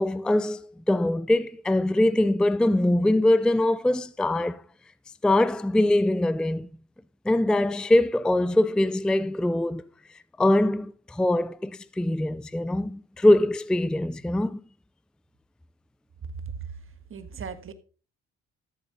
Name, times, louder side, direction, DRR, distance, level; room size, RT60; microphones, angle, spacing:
voice 1, 0.0-4.6 5.2-6.7 7.3-9.8 10.4-14.6, left 1 dB, 5° left, 0.4 m, -23 dB
voice 2, 17.1-17.7, right 6 dB, 45° right, 1.5 m, -37 dB
13.5 x 7.3 x 4.0 m
cardioid pair, 90°, 30 cm